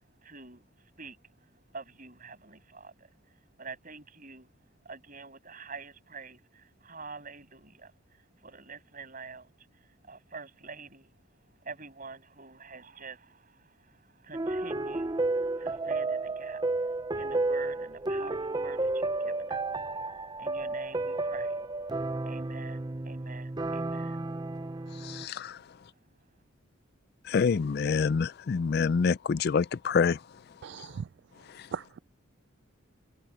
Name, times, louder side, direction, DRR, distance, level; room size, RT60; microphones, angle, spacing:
voice 1, 0.2-0.6 1.0-1.2 1.7-3.1 3.6-4.5 4.8-7.9 8.4-11.1 11.6-16.6 17.1-19.7 20.4-21.6 22.2-24.2 24.8-25.1, right 4 dB, 40° right, 7.5 m, -47 dB
sound 1, 14.3-25.3, right 2 dB, 20° right, 0.6 m, -32 dB
voice 2, 25.0-25.6 27.3-30.2, left 5 dB, 50° left, 0.4 m, -26 dB
voice 3, 30.6-31.0 31.7-32.0, right 7 dB, 55° right, 0.3 m, -38 dB
head